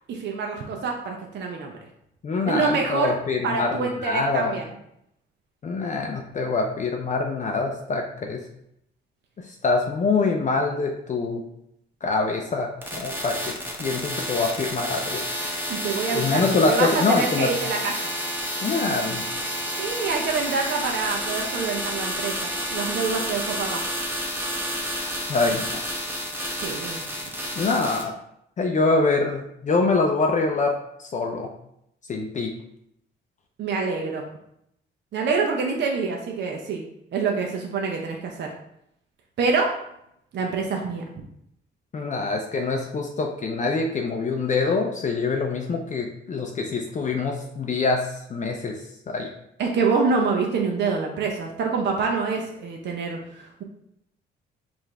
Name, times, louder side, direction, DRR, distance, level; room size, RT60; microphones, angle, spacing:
voice 1, 0.1-1.8 2.4-3.1 3.4-4.6 15.7-18.1 19.8-23.8 26.6-27.0 33.6-34.2 35.1-36.8 37.1-38.5 39.4-39.7 40.3-41.0 49.6-53.6, right 4 dB, 60° right, 1 dB, 0.6 m, -26 dB
voice 2, 2.2-4.5 5.6-8.4 9.6-11.4 12.0-13.3 13.8-15.2 16.1-17.5 18.6-19.3 25.3-25.8 27.6-28.1 28.6-30.7 31.0-31.5 32.1-32.5 41.9-48.8 49.1-49.3, left 3 dB, 40° left, 1 dB, 0.5 m, -24 dB
sound 1, 12.8-28.0, equal, 10° right, 0.9 m, -30 dB
4.6 x 2.5 x 3.4 m, 0.77 s
cardioid pair, 90°, 20 cm